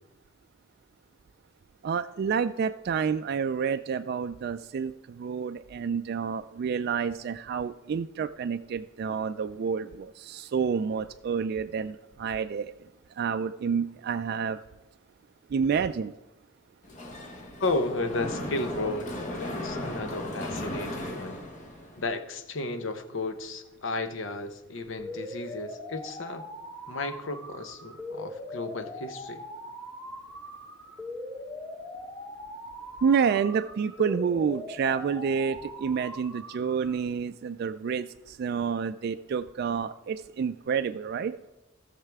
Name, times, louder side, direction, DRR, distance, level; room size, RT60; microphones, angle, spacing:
voice 1, 1.8-12.9 13.1-14.6 15.5-16.1 33.0-41.3, right 6 dB, 55° right, 9 dB, 0.3 m, -29 dB
Mechanisms, 16.8-22.0, left 1 dB, 40° left, 1.5 m, -36 dB
voice 2, 17.6-21.4 22.0-26.5 26.9-29.4, left 2 dB, 70° left, 8 dB, 0.9 m, -33 dB
sound 1, 25.0-37.0, left 1 dB, 15° left, 2.5 m, -41 dB
16.5 x 6.6 x 3.5 m, 1.0 s
head